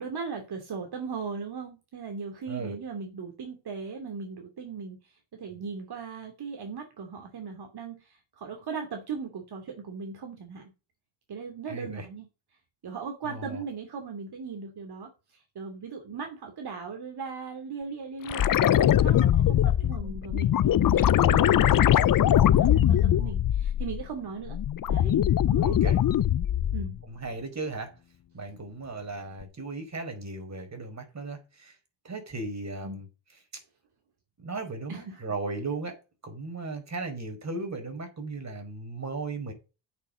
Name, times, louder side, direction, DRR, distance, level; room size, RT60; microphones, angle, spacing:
voice 1, 0.0-10.7 11.3-12.3 12.8-24.6 24.9-25.2 25.5-25.9 26.7-27.0 32.8-33.0 34.9-35.2, right 5 dB, 55° right, 2.9 m, -38 dB
voice 2, 11.7-12.0 13.2-13.6 25.6-26.0 27.1-27.9 28.3-31.8 32.0-33.1 33.5-33.6 34.4-36.0 36.2-39.5, right 3 dB, 35° right, 4.9 m, -36 dB
sound 1, 18.3-24.1 24.5-27.0 29.4-29.5, left 11 dB, 45° left, 0.7 m, -22 dB
8.4 x 7.0 x 6.3 m
supercardioid pair, 70°, 47 cm